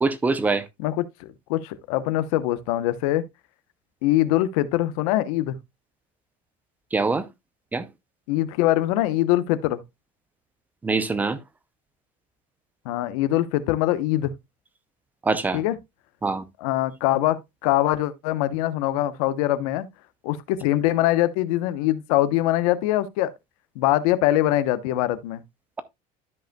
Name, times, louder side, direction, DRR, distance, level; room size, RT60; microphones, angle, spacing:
voice 1, 0.0-0.6 6.9-7.3 7.7-7.8 10.8-11.4 15.2-15.6 16.2-16.4, right 3 dB, 10° right, 0.5 m, -23 dB
voice 2, 0.8-3.2 4.0-5.6 8.3-9.8 12.8-14.3 15.5-15.8 16.6-19.9 20.2-23.3 23.7-25.4, left 14 dB, 75° left, 0.9 m, -23 dB
13.0 x 5.2 x 2.2 m
cardioid pair, 170°, 18 cm